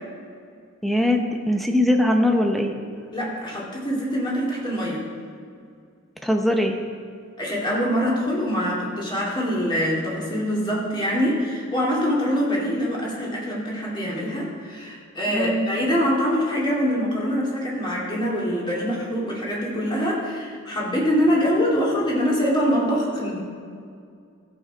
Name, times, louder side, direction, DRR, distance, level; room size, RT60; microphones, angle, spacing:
voice 1, 0.8-2.7 6.2-6.8 15.3-15.7, left 1 dB, ahead, 3 dB, 0.7 m, -21 dB
voice 2, 3.1-5.1 7.4-23.4, equal, 25° left, -5 dB, 2.4 m, -24 dB
15.5 x 6.2 x 4.5 m, 2.3 s
head